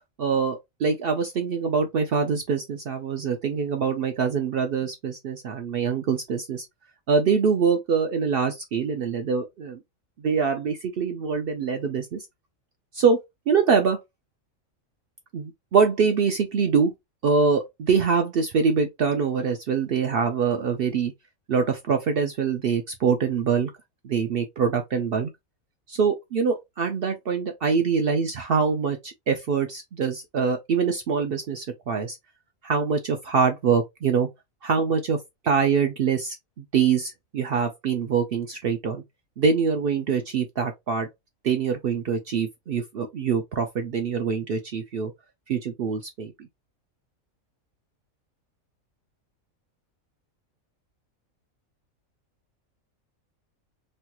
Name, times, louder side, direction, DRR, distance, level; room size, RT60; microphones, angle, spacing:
voice 1, 0.2-6.7 7.1-9.8 10.2-12.3 12.9-14.0 15.3-16.9 17.2-21.1 21.5-23.7 24.0-25.3 25.9-32.2 32.6-34.3 34.6-35.2 35.4-39.0 39.4-41.1 41.4-45.1 45.5-46.5, right 5 dB, 70° right, 0.5 m, -24 dB
3.2 x 2.2 x 2.8 m
omnidirectional pair, 1.5 m